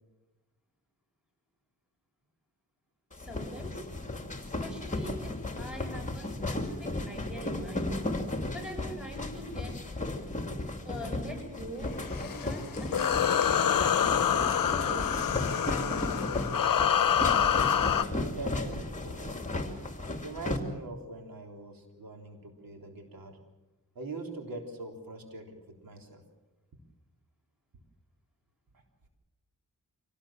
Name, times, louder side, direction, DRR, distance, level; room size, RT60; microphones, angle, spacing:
sound 1, 3.1-20.6, left 2 dB, 20° left, 2.8 m, -35 dB
voice 1, 3.1-3.9 4.6-7.9 8.5-9.7 10.8-11.9 12.2-15.1 15.5-16.2, equal, ahead, 2 dB, 7.6 m, -44 dB
sound 2, 12.0-18.0, left 8 dB, 70° left, 0.9 m, -26 dB
voice 2, 17.9-19.4 20.2-23.4 24.0-26.2, right 2 dB, 80° right, 3 dB, 3.8 m, -43 dB
24.5 x 18.5 x 7.5 m, 1.1 s
wide cardioid pair, 85°, 34 cm